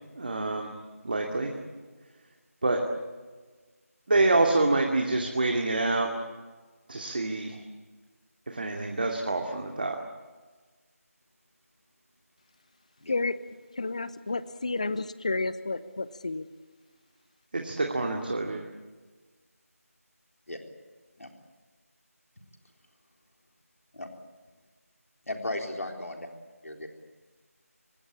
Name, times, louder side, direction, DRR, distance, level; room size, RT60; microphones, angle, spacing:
voice 1, 0.2-0.7 1.0-1.5 2.6-2.8 4.1-6.1 6.9-7.6 8.5-10.0 17.5-18.6, right 2 dB, 40° right, 2 dB, 2.5 m, -26 dB
voice 2, 13.1-13.4 13.8-16.5, left 3 dB, 25° left, 16 dB, 0.7 m, -31 dB
voice 3, 25.3-26.3 26.6-26.9, left 1 dB, 65° left, 3 dB, 3.8 m, -35 dB
29.5 x 17.0 x 8.7 m, 1.4 s
figure-of-eight pair, 170°, 8 cm